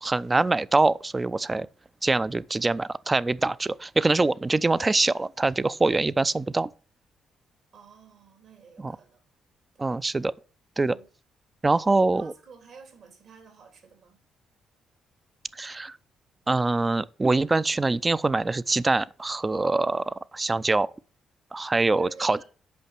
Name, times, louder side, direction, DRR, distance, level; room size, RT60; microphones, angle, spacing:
voice 1, 0.0-1.7 2.0-6.7 8.8-9.0 9.8-10.3 10.8-11.0 11.6-12.3 15.6-16.0 16.5-20.9 21.5-22.4, right 3 dB, 25° right, 0.5 m, -24 dB
voice 2, 7.7-9.2 9.7-10.0 10.8-11.1 11.9-14.2 20.6-20.7 21.5-21.6 22.0-22.4, right 5 dB, 65° right, 3.3 m, -50 dB
8.5 x 5.7 x 6.0 m
supercardioid pair, 60°, 0 cm